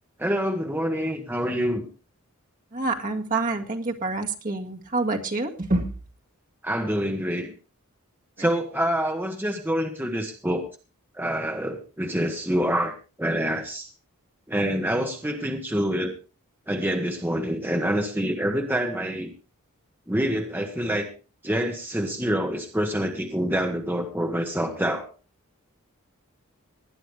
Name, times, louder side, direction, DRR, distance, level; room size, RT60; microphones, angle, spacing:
voice 1, 0.2-1.9 6.6-7.5 8.4-10.6 11.1-13.9 14.5-16.1 16.7-19.3 20.1-21.1 21.4-25.1, equal, 10° right, 3 dB, 1.3 m, -26 dB
voice 2, 2.7-5.9 8.4-8.5, right 3 dB, 40° right, 2 dB, 1.9 m, -27 dB
19.5 x 11.0 x 3.4 m, 0.33 s
head